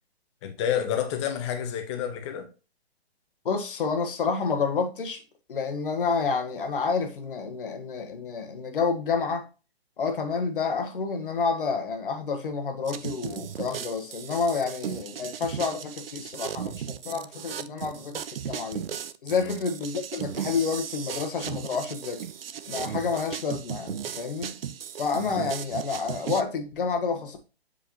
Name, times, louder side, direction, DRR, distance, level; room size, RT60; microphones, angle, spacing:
voice 1, 0.4-2.5 19.3-19.6, left 9 dB, 25° left, 1.1 m, -29 dB
voice 2, 3.4-5.2 5.5-9.4 10.0-18.8 19.2-22.2 22.7-24.6 25.0-27.5, left 5 dB, 55° left, 1.5 m, -29 dB
sound 1, 12.9-26.4, right 9 dB, 65° right, 0.6 m, -36 dB
7.7 x 4.9 x 2.9 m
figure-of-eight pair, 135°, 32 cm